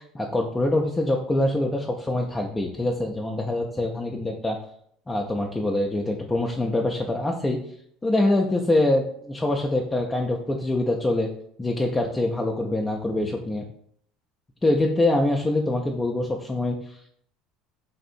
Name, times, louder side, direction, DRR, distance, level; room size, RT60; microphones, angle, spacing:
voice 1, 0.0-4.6 5.1-7.6 8.0-11.3 11.6-13.6 14.6-17.0, left 1 dB, 20° left, 0 dB, 0.5 m, -24 dB
3.5 x 2.5 x 4.2 m, 0.65 s
hypercardioid pair, 75°, 0 cm